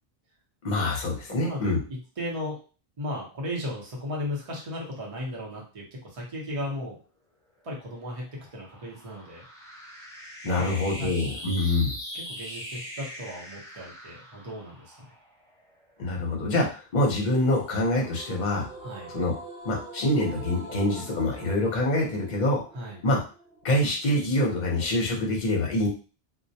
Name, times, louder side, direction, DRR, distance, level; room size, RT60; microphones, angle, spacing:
voice 1, 0.6-1.8 10.4-11.9 16.0-18.7 19.1-19.3 19.6-22.6 23.0-23.2 23.6-25.9, left 1 dB, 50° left, -1 dB, 0.8 m, -25 dB
voice 2, 1.3-2.6 3.0-7.0 7.6-9.4 10.4-10.7 11.0-11.1 12.1-15.0 18.8-19.1 22.7-23.0, left 1 dB, 35° right, -3 dB, 0.7 m, -36 dB
sound 1, 7.5-16.2, equal, 5° left, 0.6 m, -42 dB
sound 2, 17.5-24.5, right 3 dB, 75° right, 0.9 m, -45 dB
2.2 x 2.1 x 2.7 m, 0.36 s
omnidirectional pair, 1.1 m